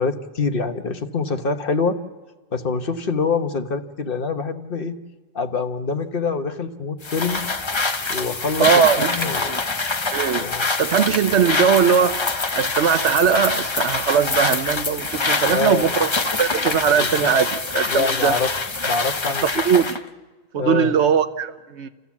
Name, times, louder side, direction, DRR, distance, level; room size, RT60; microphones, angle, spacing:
voice 1, 0.0-2.0 2.5-5.0 5.3-7.4 8.1-9.6 10.4-10.7 15.3-15.9 17.0-17.3 17.9-18.5 18.8-19.4 20.6-21.0, left 4 dB, 55° left, 1.2 m, -25 dB
sound 1, 7.0-20.0, left 3 dB, 30° left, 0.8 m, -25 dB
voice 2, 8.6-9.6 10.1-10.5 10.8-16.1 16.4-18.4 19.4-20.0 20.5-21.9, right 7 dB, 85° right, 1.2 m, -20 dB
28.5 x 15.0 x 7.2 m
omnidirectional pair, 1.2 m